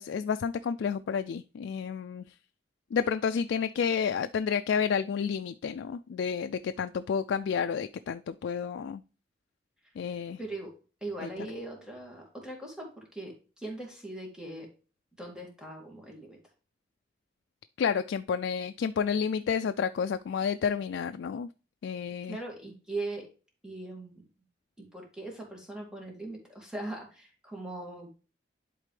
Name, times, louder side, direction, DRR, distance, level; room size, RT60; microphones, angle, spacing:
voice 1, 0.0-2.4 2.9-9.0 10.0-10.4 11.2-11.3 17.8-21.5 21.8-22.4, left 6 dB, 75° left, 10 dB, 0.3 m, -30 dB
voice 2, 10.4-10.7 11.0-14.7 15.2-16.4 20.7-20.8 22.2-23.3 23.6-24.2 24.8-28.1, right 2 dB, 5° right, -1 dB, 2.1 m, -40 dB
11.0 x 4.1 x 3.3 m, 0.35 s
head